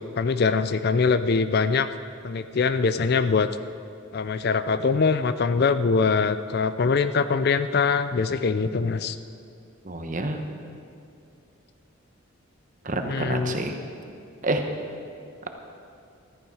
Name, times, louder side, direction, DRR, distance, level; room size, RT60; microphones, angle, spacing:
voice 1, 0.1-1.9 2.2-3.5 4.1-9.2 13.0-13.6, left 4 dB, 45° left, 12 dB, 0.4 m, -23 dB
voice 2, 9.8-10.4 12.8-13.8 14.4-14.6, right 2 dB, 35° right, 5 dB, 1.0 m, -28 dB
14.5 x 13.5 x 4.8 m, 2.5 s
head